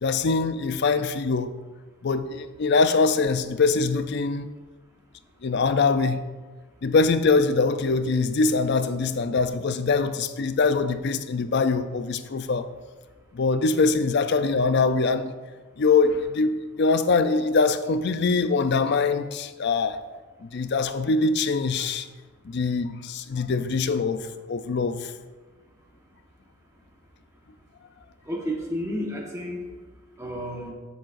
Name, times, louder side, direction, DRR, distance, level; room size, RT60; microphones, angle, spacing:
voice 1, 0.0-1.5 2.0-4.5 5.4-6.2 6.8-12.7 13.3-15.3 15.8-20.0 20.4-22.1 22.4-25.1, left 4 dB, 50° left, 0.4 m, -23 dB
voice 2, 28.3-29.6 30.2-30.7, equal, 15° right, 1.2 m, -31 dB
11.5 x 7.2 x 2.5 m
head